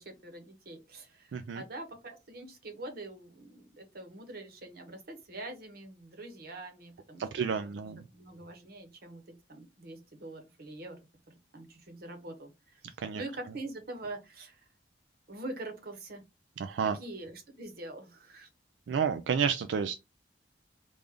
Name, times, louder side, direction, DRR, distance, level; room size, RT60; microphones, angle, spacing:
voice 1, 0.0-7.5 7.8-11.0 11.5-14.6 15.3-16.2 16.8-18.5, right 2 dB, 55° right, 1.0 m, -44 dB
voice 2, 1.3-1.6 7.2-8.0 13.0-13.2 16.6-17.0 18.9-19.9, right 6 dB, 85° right, 0.3 m, -30 dB
3.4 x 2.4 x 3.6 m
head